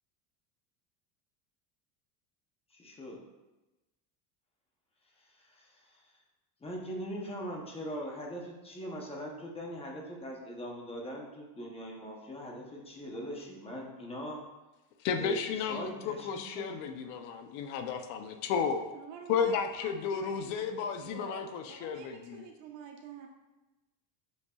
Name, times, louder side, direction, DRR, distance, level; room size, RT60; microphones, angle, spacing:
voice 1, 2.7-3.2 5.2-6.0 6.6-14.4 15.1-15.4 15.7-16.9, equal, 10° left, -1 dB, 0.8 m, -41 dB
voice 2, 15.0-18.8 19.3-22.4, left 6 dB, 65° left, 7 dB, 0.7 m, -33 dB
voice 3, 18.9-23.3, right 6 dB, 70° right, 2 dB, 1.1 m, -48 dB
7.9 x 5.3 x 2.3 m, 1.1 s
cardioid pair, 160°, 49 cm